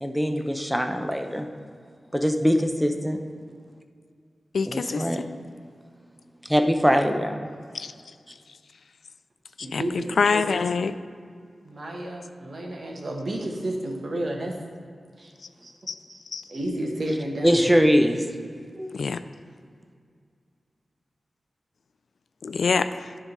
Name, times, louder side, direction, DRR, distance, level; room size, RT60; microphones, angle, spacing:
voice 1, 0.0-1.5 2.1-3.2 4.7-5.2 6.4-7.5 17.4-18.2 18.8-19.0, equal, ahead, 5 dB, 0.6 m, -22 dB
voice 2, 4.5-5.0 7.7-7.9 9.6-10.9 15.9-16.0 16.3-16.4 18.9-19.2 22.4-23.1, left 5 dB, 80° left, 12 dB, 0.3 m, -25 dB
voice 3, 9.6-10.4 11.6-14.6 15.2-15.3 15.6-15.7 16.1-16.2 16.5-17.7, right 1 dB, 60° right, 0 dB, 1.3 m, -31 dB
10.0 x 3.7 x 5.4 m, 2.1 s
wide cardioid pair, 70°, 0 cm